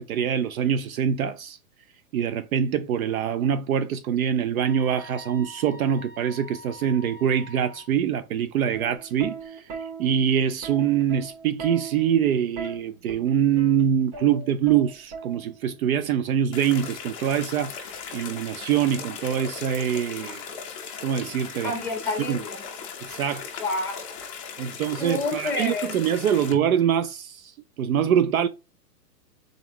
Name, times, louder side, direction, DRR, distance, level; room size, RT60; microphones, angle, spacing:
voice 1, 0.0-1.6 2.1-20.4 21.0-21.7 22.3-22.4 23.0-23.5 24.6-28.5, right 9 dB, 60° right, 0.5 m, -24 dB
sound 1, 4.6-7.9, left 2 dB, 20° right, 0.7 m, -45 dB
Plucked string instrument, 8.5-15.8 16.8-17.2, right 4 dB, 45° right, 1.7 m, -39 dB
sound 2, 16.5-26.5, left 6 dB, 20° left, 0.5 m, -38 dB
voice 2, 21.6-22.6 23.6-24.1 24.7-25.9, left 2 dB, 5° left, 1.5 m, -29 dB
3.8 x 3.6 x 2.9 m
hypercardioid pair, 145°, 48 cm